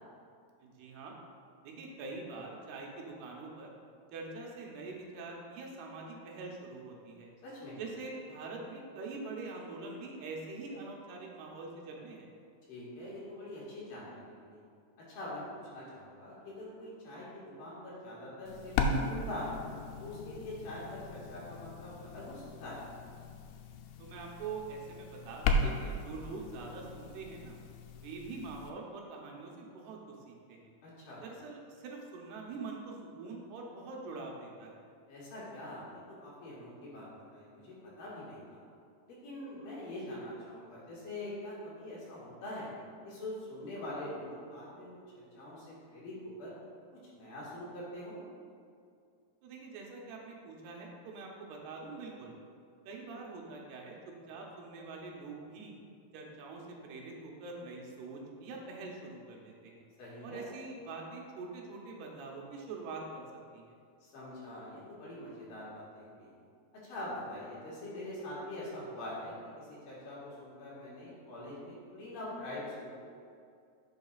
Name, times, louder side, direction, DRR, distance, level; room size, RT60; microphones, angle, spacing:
voice 1, 0.6-1.2 1.6-3.7 4.1-7.3 7.8-12.3 24.0-27.6 28.0-30.7 31.2-34.8 49.4-52.3 52.9-55.7 56.1-59.9 60.2-63.3 63.5-63.8, right 3 dB, 80° right, -1 dB, 3.0 m, -44 dB
voice 2, 7.4-7.8 12.7-14.6 15.1-15.4 15.7-19.6 20.0-22.8 30.8-31.2 35.1-38.6 39.1-42.7 43.0-46.5 46.9-48.2 60.0-60.4 64.0-66.3 66.8-73.0, left 1 dB, 60° left, -7 dB, 3.3 m, -44 dB
sound 1, 18.5-28.7, left 2 dB, 90° left, 2.7 m, -37 dB
11.0 x 7.1 x 2.4 m, 2.3 s
omnidirectional pair, 4.6 m